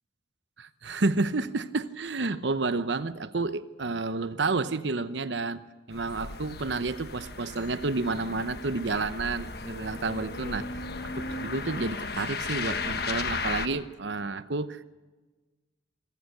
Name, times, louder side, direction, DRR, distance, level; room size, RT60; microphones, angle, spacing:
voice 1, 0.6-5.6 5.9-10.8 11.1-14.8, right 3 dB, 70° right, 0.9 m, -30 dB
sound 1, 5.9-13.7, left 4 dB, 55° left, 1.4 m, -35 dB
26.0 x 16.5 x 6.7 m
head